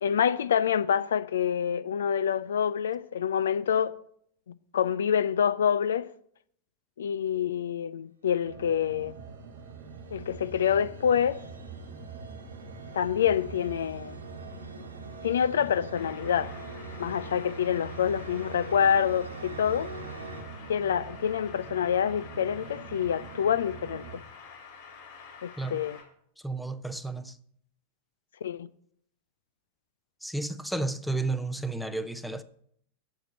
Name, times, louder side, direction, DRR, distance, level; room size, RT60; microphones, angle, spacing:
voice 1, 0.0-4.0 4.7-6.1 7.0-9.1 10.1-11.4 12.9-14.2 15.2-16.5 17.0-19.9 20.7-24.2 25.4-26.0 28.4-28.7, left 8 dB, 65° left, 0.3 m, -27 dB
sound 1, 8.4-24.2, right 6 dB, 40° right, 0.9 m, -44 dB
sound 2, 8.9-20.4, equal, 75° right, 1.6 m, -46 dB
sound 3, 15.9-26.0, left 5 dB, 50° left, 3.6 m, -49 dB
voice 2, 26.4-27.4 30.2-32.4, right 2 dB, ahead, 0.6 m, -32 dB
7.6 x 6.5 x 7.7 m
figure-of-eight pair, 90°, 0 cm